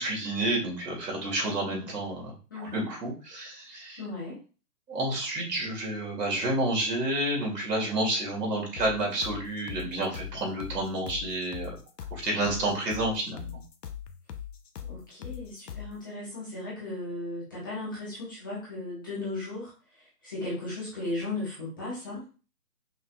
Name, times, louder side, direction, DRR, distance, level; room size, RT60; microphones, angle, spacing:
voice 1, 0.0-4.0 4.9-11.7 12.1-13.6, right 1 dB, 75° right, -1 dB, 2.4 m, -30 dB
voice 2, 2.5-2.9 4.0-4.4 14.9-22.2, left 2 dB, 15° left, -8 dB, 0.8 m, -36 dB
sound 1, 8.8-16.0, left 9 dB, 85° left, 0.8 m, -40 dB
5.5 x 3.3 x 2.3 m, 0.35 s
hypercardioid pair, 165°, 48 cm